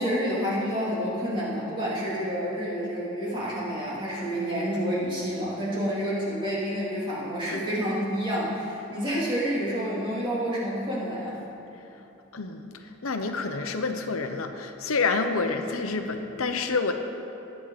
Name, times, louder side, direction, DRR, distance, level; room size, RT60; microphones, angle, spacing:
voice 1, 0.0-11.4, equal, 25° right, -7 dB, 3.2 m, -29 dB
voice 2, 12.3-12.7 13.0-16.9, left 4 dB, 85° left, 6 dB, 0.9 m, -28 dB
20.0 x 9.1 x 4.2 m, 2.9 s
head